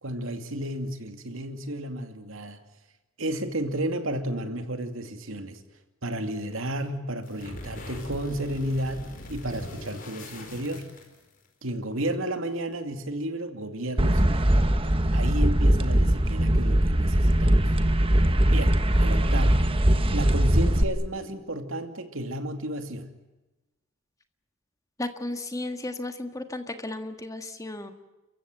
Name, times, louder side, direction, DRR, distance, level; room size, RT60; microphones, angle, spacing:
voice 1, 0.0-2.6 3.2-5.6 6.0-10.9 11.6-14.5 15.1-17.6 18.5-19.6 20.1-23.1, right 1 dB, 75° right, 7 dB, 2.6 m, -32 dB
sound 1, 7.2-11.5, left 1 dB, 40° left, 4.7 m, -41 dB
sound 2, 14.0-20.8, right 1 dB, 25° right, 1.3 m, -21 dB
voice 2, 25.0-27.9, left 2 dB, 15° left, 7 dB, 1.6 m, -34 dB
30.0 x 15.5 x 9.1 m, 1.1 s
head